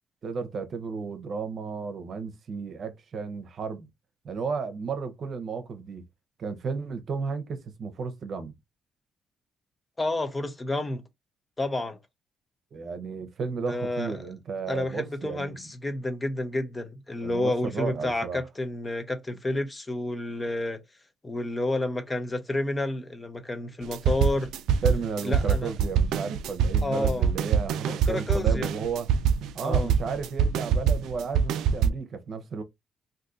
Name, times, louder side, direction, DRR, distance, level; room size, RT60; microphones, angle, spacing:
voice 1, 0.2-3.9 4.2-6.0 6.4-8.5 12.7-15.7 17.2-18.4 24.8-29.1 29.5-32.6, right 5 dB, 55° right, 0.7 m, -33 dB
voice 2, 10.0-11.0 11.6-12.0 13.7-14.2 14.7-20.8 21.2-24.5 25.2-25.7 26.8-27.3 27.9-28.7 29.6-29.9, left 2 dB, 20° left, 0.7 m, -30 dB
sound 1, 23.8-31.9, right 7 dB, 85° right, 0.3 m, -24 dB
2.6 x 2.6 x 3.7 m
cardioid pair, 90°, 0 cm